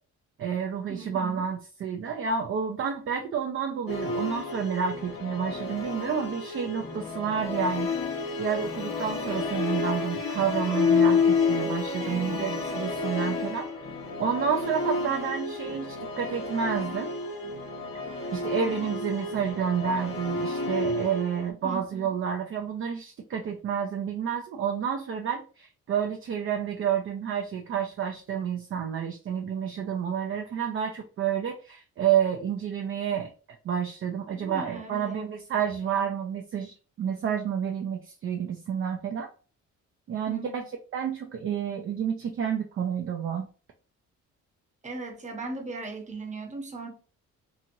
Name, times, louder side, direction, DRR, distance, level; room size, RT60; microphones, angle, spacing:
voice 1, 0.4-13.7 14.2-17.1 18.3-33.3 33.6-39.3 40.1-40.7 40.9-43.5, right 7 dB, 45° right, 0.5 m, -30 dB
voice 2, 0.9-1.4 12.0-12.6 21.6-22.1 34.3-35.3 40.3-40.7 44.8-46.9, right 3 dB, 25° right, 0.9 m, -38 dB
Musical instrument, 3.9-21.5, left 4 dB, 50° left, 1.0 m, -30 dB
2.9 x 2.8 x 2.6 m
cardioid pair, 90°, 30 cm